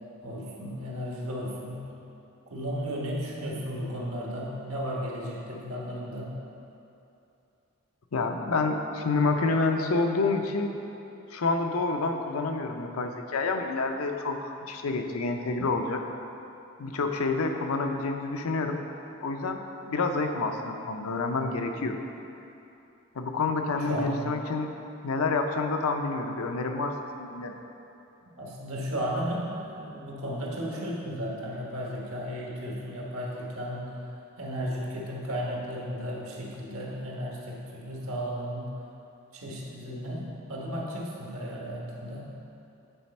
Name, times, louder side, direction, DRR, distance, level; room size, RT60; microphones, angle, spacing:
voice 1, 0.2-1.9 2.5-6.3 23.9-24.3 28.4-34.0 34.4-38.7 39.3-42.3, equal, 80° right, -3 dB, 1.3 m, -34 dB
voice 2, 8.1-10.7 11.3-16.0 16.8-18.8 19.2-22.0 23.1-24.7 25.0-27.6, left 3 dB, 85° left, 5 dB, 0.6 m, -28 dB
9.1 x 4.2 x 4.2 m, 2.8 s
head